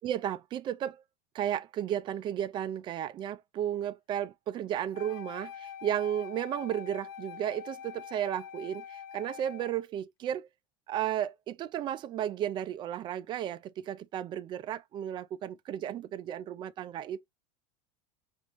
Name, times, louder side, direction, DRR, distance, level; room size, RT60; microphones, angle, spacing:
voice 1, 0.0-1.0 1.3-10.5 10.9-17.3, right 10 dB, 25° right, 0.4 m, -34 dB
Wind instrument woodwind instrument, 4.9-9.8, left 8 dB, 65° left, 0.5 m, -45 dB
5.0 x 2.5 x 3.0 m
supercardioid pair, 145°, 20 cm